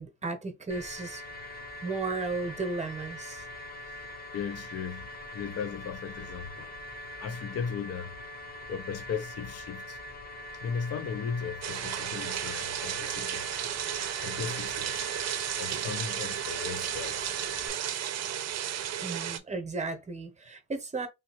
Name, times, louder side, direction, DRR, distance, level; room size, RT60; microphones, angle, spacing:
voice 1, 0.0-1.5 1.8-3.4 19.0-21.1, right 3 dB, 25° right, 0.9 m, -35 dB
sound 1, 0.7-17.7, left 1 dB, 30° left, 0.9 m, -43 dB
voice 2, 4.3-6.8 7.2-8.1 8.7-10.0 10.6-13.5 14.2-15.1 15.6-17.4 17.8-18.2, left 6 dB, 55° left, 0.6 m, -37 dB
sound 2, 11.6-19.4, right 10 dB, 60° right, 0.6 m, -33 dB
3.3 x 2.7 x 3.0 m
cardioid pair, 90°, 30 cm